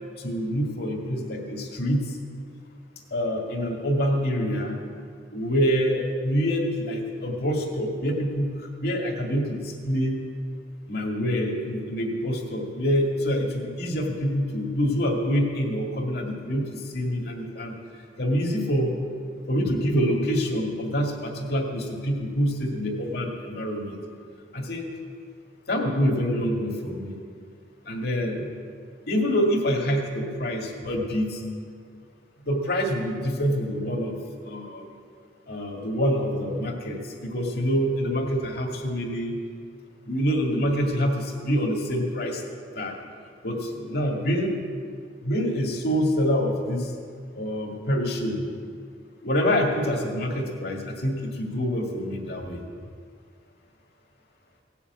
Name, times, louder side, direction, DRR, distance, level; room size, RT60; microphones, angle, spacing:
voice 1, 0.2-2.0 3.1-4.8 5.3-8.5 8.8-10.2 10.9-17.8 18.2-18.9 19.5-24.0 24.5-24.9 25.7-27.2 27.9-28.5 29.1-31.4 32.5-34.2 34.4-34.8 35.5-39.3 40.1-42.4 42.8-42.9 43.4-44.6 45.2-46.9 47.3-48.6 49.2-52.6, equal, 60° left, 1 dB, 2.2 m, -26 dB
18.0 x 7.2 x 8.2 m, 2.1 s
head